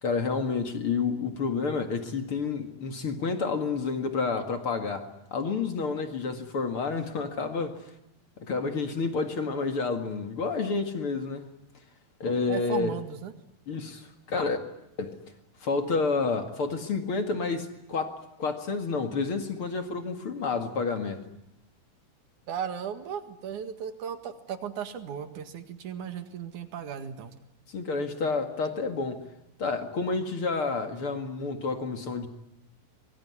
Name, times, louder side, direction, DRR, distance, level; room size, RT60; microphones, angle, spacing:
voice 1, 0.0-7.9 8.4-11.5 12.2-13.0 13.7-14.6 15.0-15.2 15.6-21.2 27.7-29.2 29.6-32.3, left 4 dB, 40° left, 7 dB, 2.3 m, -29 dB
voice 2, 12.5-13.3 22.5-27.3, right 8 dB, 55° right, 9 dB, 2.8 m, -36 dB
25.0 x 23.5 x 9.7 m, 0.87 s
omnidirectional pair, 4.7 m